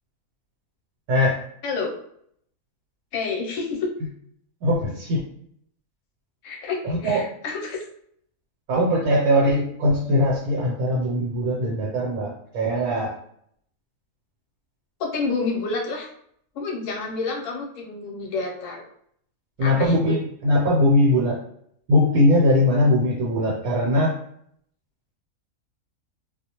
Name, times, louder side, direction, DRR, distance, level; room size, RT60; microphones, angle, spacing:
voice 1, 1.1-1.4 4.6-5.2 6.8-7.3 8.7-13.1 19.6-21.4 21.9-24.2, left 1 dB, 80° right, -3 dB, 1.1 m, -20 dB
voice 2, 1.6-1.9 3.1-3.9 6.4-7.8 15.0-16.1 16.5-18.8 19.6-20.2, left 4 dB, 70° left, 0 dB, 0.9 m, -29 dB
2.4 x 2.0 x 2.8 m, 0.67 s
omnidirectional pair, 1.5 m